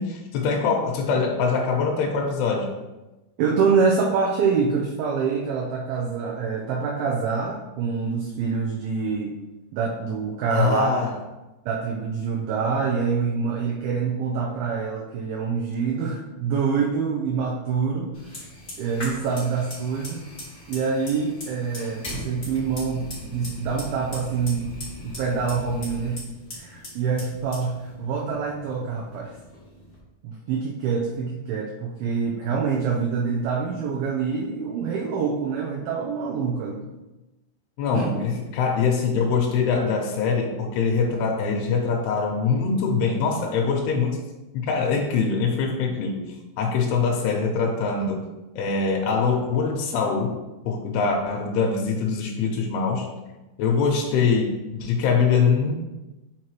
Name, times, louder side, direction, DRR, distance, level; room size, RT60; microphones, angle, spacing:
voice 1, 0.0-2.7 10.5-11.2 37.8-44.2 44.5-46.2 46.6-48.3 48.6-50.3 50.7-53.1 53.6-55.8, left 5 dB, 90° left, -1 dB, 2.7 m, -23 dB
voice 2, 3.4-9.4 9.7-11.0 11.7-18.1 18.8-20.3 20.7-24.7 25.0-26.3 26.5-29.4 30.2-36.9 37.9-38.1, right 5 dB, 80° right, -1 dB, 2.3 m, -26 dB
Fire, 18.1-30.0, left 1 dB, 25° left, 1.4 m, -39 dB
7.3 x 4.7 x 3.0 m, 1.0 s
omnidirectional pair, 4.8 m